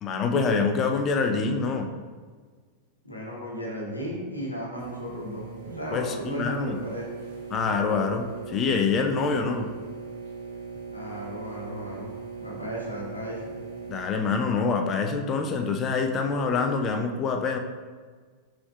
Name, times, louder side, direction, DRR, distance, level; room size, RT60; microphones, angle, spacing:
voice 1, 0.0-1.9 5.9-6.8 7.5-9.7 13.9-17.6, left 4 dB, 30° left, 5 dB, 0.4 m, -26 dB
voice 2, 3.0-5.4 5.7-7.1 10.9-12.1 12.4-13.5, equal, 85° left, -3 dB, 1.1 m, -35 dB
sound 1, 4.8-14.0, right 5 dB, 60° right, 1.1 m, -39 dB
6.0 x 3.7 x 2.3 m, 1.5 s
figure-of-eight pair, 90°, 0 cm